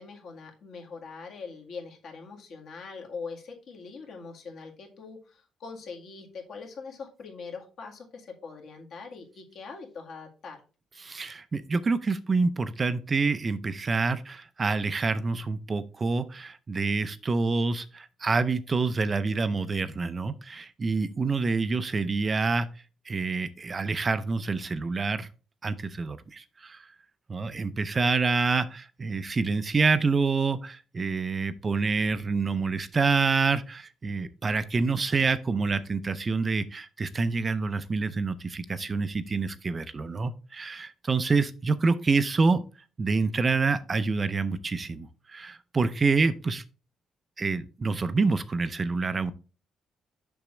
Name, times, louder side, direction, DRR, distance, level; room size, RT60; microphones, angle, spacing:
voice 1, 0.0-10.6, left 4 dB, 60° left, 1 dB, 1.9 m, -42 dB
voice 2, 11.0-22.7 23.1-25.3 25.6-26.9 27.3-42.6 43.0-46.6 47.4-49.3, right 4 dB, 25° right, 12 dB, 0.4 m, -27 dB
6.8 x 6.1 x 3.2 m, 0.35 s
cardioid pair, 140°, 0 cm